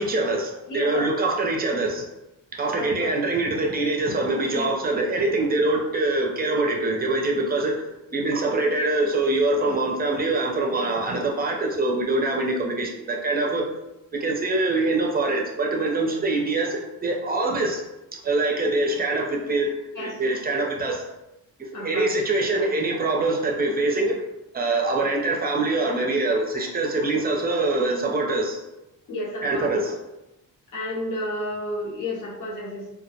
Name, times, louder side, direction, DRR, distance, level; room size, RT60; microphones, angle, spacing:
voice 1, 0.0-2.1 2.5-7.8 8.1-13.6 14.1-17.8 18.1-21.0 21.6-24.2 24.5-28.6 29.4-30.0, right 2 dB, 30° right, 0 dB, 0.5 m, -24 dB
voice 2, 0.7-1.1 2.7-3.1 4.5-4.7 10.7-10.9 20.0-20.1 21.7-22.1 29.1-29.7 30.7-32.9, left 1 dB, 70° left, -3 dB, 0.8 m, -31 dB
2.2 x 2.0 x 2.7 m, 0.93 s
cardioid pair, 100°, 33 cm